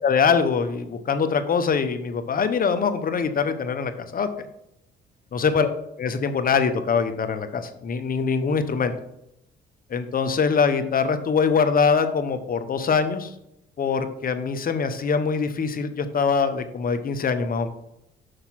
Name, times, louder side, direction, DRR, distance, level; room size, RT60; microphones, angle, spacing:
voice 1, 0.0-4.5 5.3-5.7 6.0-8.9 9.9-13.3 13.8-17.7, left 5 dB, 45° left, 9 dB, 1.0 m, -23 dB
6.5 x 5.9 x 5.8 m, 0.83 s
cardioid pair, 90°, 20 cm